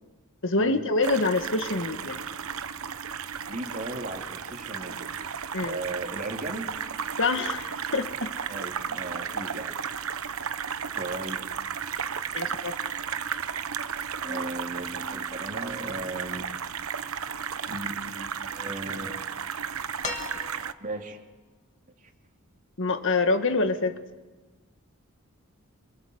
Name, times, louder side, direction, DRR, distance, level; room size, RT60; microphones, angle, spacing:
voice 1, 0.4-2.2 5.5-5.8 7.2-8.3 12.3-12.8 22.8-23.9, left 3 dB, 60° left, 8 dB, 2.0 m, -26 dB
sound 1, 1.0-20.7, right 7 dB, 70° right, 1.0 m, -34 dB
voice 2, 3.5-5.1 5.6-6.7 8.5-9.8 11.0-11.4 14.2-16.5 17.7-19.1 20.8-21.2, right 2 dB, 35° right, 3 dB, 3.0 m, -36 dB
Keyboard (musical), 14.2-16.0, equal, 20° right, 2.5 m, -41 dB
sound 2, 20.0-21.0 22.6-22.7, left 3 dB, 35° left, 3.0 m, -36 dB
27.0 x 25.5 x 8.1 m, 1.2 s
head